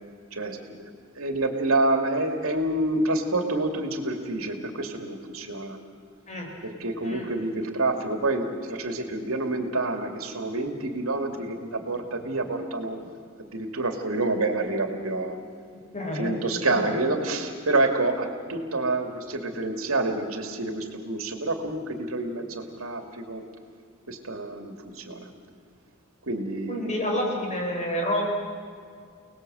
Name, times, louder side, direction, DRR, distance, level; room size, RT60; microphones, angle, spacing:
voice 1, 0.3-0.9 1.2-5.8 6.6-13.0 13.4-15.4 16.0-23.4 24.1-25.3 26.2-26.9, right 2 dB, 85° right, 5 dB, 2.5 m, -28 dB
voice 2, 15.9-16.3 16.6-16.9 26.7-28.2, equal, 35° left, 1 dB, 4.4 m, -29 dB
30.0 x 19.5 x 7.9 m, 2.2 s
head